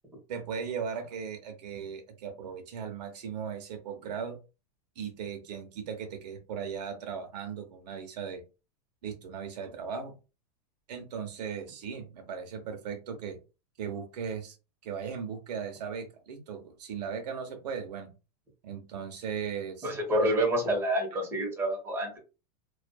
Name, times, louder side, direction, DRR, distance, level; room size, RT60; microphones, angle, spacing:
voice 1, 0.3-4.4 5.0-8.4 9.0-10.1 10.9-13.4 13.8-14.6 14.8-18.1 18.6-19.9, right 6 dB, 85° right, 4 dB, 0.8 m, -37 dB
voice 2, 19.8-22.2, right 1 dB, 10° right, -2 dB, 1.1 m, -28 dB
2.6 x 2.4 x 2.2 m, 0.31 s
supercardioid pair, 140°, 21 cm